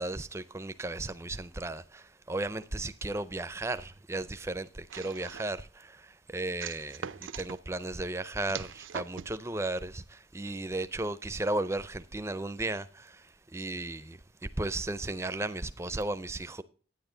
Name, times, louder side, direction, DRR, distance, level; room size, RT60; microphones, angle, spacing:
voice 1, 0.0-5.7 6.3-16.6, right 2 dB, 15° right, 0.4 m, -35 dB
sound 1, 4.9-5.6 6.6-7.6 8.5-9.4, right 7 dB, 75° right, 0.5 m, -41 dB
10.5 x 9.4 x 3.8 m
head